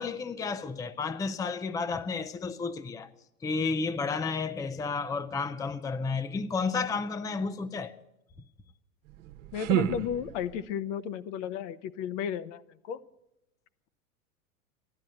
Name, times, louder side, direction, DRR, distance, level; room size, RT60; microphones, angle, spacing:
voice 1, 0.0-3.1 3.4-7.9, left 4 dB, 10° left, 0.6 m, -32 dB
sound 1, 9.0-10.7, right 12 dB, 60° right, 1.3 m, -31 dB
voice 2, 9.5-13.0, left 8 dB, 55° left, 0.9 m, -34 dB
15.0 x 12.0 x 7.8 m
hypercardioid pair, 100°, 43 cm